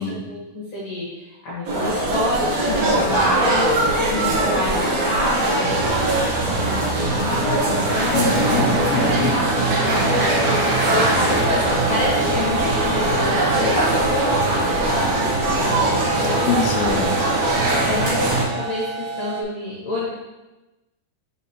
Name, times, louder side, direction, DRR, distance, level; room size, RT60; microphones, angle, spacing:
voice 1, 0.2-6.1 6.5-16.4 17.9-20.1, left 1 dB, 65° left, -6 dB, 1.6 m, -27 dB
sound 1, 1.7-18.4, right 2 dB, 70° right, 1.9 m, -21 dB
voice 2, 2.7-3.2 8.1-9.4 16.4-17.3, left 5 dB, 85° left, 2 dB, 2.7 m, -25 dB
sound 2, 7.8-13.5, right 1 dB, 55° right, 1.7 m, -29 dB
sound 3, 8.3-19.4, right 4 dB, 85° right, 3.0 m, -30 dB
9.2 x 4.3 x 2.8 m, 1.1 s
omnidirectional pair, 4.8 m